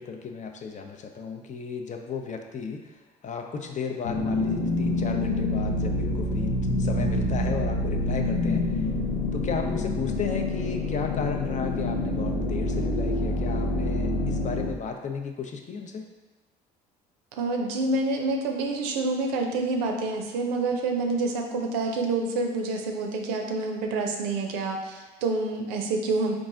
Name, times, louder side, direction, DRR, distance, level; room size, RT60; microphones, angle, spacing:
voice 1, 0.0-2.8 3.2-6.5 6.8-8.8 9.3-16.0, left 5 dB, 35° left, 4 dB, 0.5 m, -34 dB
sound 1, 4.0-14.7, left 2 dB, 90° left, 0.7 m, -27 dB
voice 2, 17.4-26.3, right 3 dB, 85° right, 2 dB, 0.5 m, -27 dB
3.9 x 2.5 x 3.7 m, 1.2 s
hypercardioid pair, 60°, 20 cm